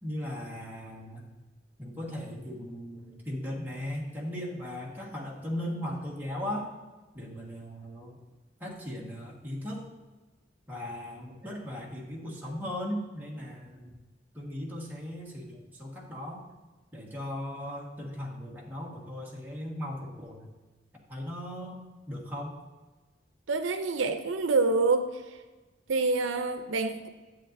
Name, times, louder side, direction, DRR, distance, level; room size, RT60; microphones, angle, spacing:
voice 1, 0.0-1.3 1.8-6.7 7.1-8.2 8.6-9.8 10.7-14.0 14.3-16.4 16.9-20.5 21.1-22.6, left 1 dB, 10° right, -4 dB, 1.5 m, -37 dB
voice 2, 23.5-25.1 25.9-27.1, right 3 dB, 90° right, 8 dB, 0.5 m, -26 dB
10.0 x 7.7 x 2.6 m, 1.2 s
head